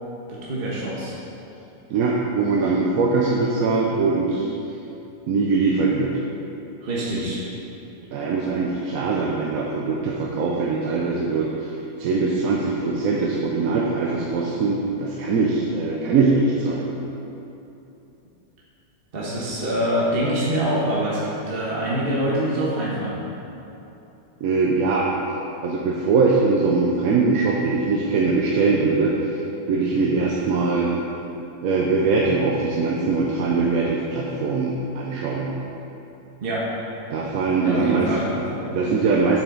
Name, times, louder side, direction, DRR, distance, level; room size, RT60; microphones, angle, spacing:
voice 1, 0.3-1.1 6.8-7.4 19.1-23.2 36.4-36.6 37.6-38.7, right 1 dB, 40° right, -6 dB, 1.4 m, -25 dB
voice 2, 1.9-4.5 5.3-6.1 8.1-11.7 12.0-16.9 24.4-25.1 25.6-29.4 29.7-30.9 31.6-35.5 37.1-38.1 38.8-39.4, right 4 dB, 70° right, -2 dB, 1.1 m, -22 dB
8.4 x 7.4 x 3.9 m, 2.9 s
omnidirectional pair, 1.6 m